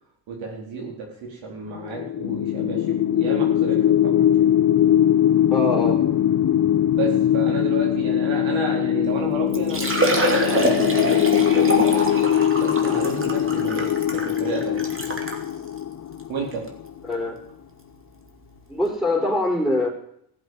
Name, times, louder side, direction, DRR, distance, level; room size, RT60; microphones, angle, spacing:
voice 1, 0.3-4.5 6.9-11.2 11.5-11.9 12.6-14.9 16.3-16.6, right 4 dB, 70° right, -1 dB, 4.4 m, -31 dB
sound 1, 1.8-16.8, left 10 dB, 35° left, 0.7 m, -21 dB
sound 2, 2.2-12.2, left 12 dB, 55° left, 1.4 m, -32 dB
voice 2, 5.5-6.0 17.1-17.4 18.7-19.9, left 2 dB, ahead, -1 dB, 5.2 m, -23 dB
Liquid, 9.1-9.2 9.5-15.4 16.1-16.2 16.7-16.8 18.4-18.5 18.7-18.8, right 1 dB, 25° right, 2.9 m, -25 dB
15.5 x 8.0 x 7.9 m, 0.71 s
cardioid pair, 105°, 48 cm